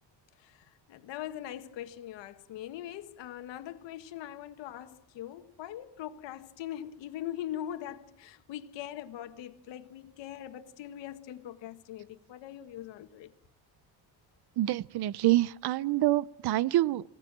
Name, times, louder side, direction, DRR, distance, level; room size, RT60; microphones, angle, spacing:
voice 1, 0.4-13.3, left 12 dB, 85° left, 1.7 m, -41 dB
voice 2, 14.6-17.0, right 15 dB, 60° right, 0.8 m, -26 dB
26.5 x 17.5 x 7.4 m
cardioid pair, 105°, 43 cm